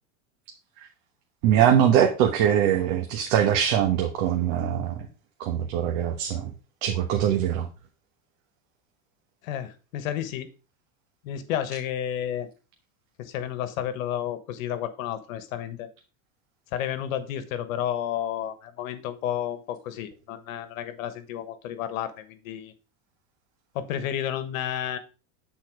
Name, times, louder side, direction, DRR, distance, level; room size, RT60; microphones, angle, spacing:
voice 1, 1.4-4.9 5.4-6.5 6.8-7.7, right 9 dB, 55° right, 4 dB, 1.2 m, -22 dB
voice 2, 9.4-10.5 11.2-12.5 13.2-15.9 16.7-22.7 23.7-25.0, left 10 dB, 75° left, 12 dB, 1.3 m, -31 dB
8.5 x 4.4 x 4.6 m, 0.33 s
supercardioid pair, 135°, 40 cm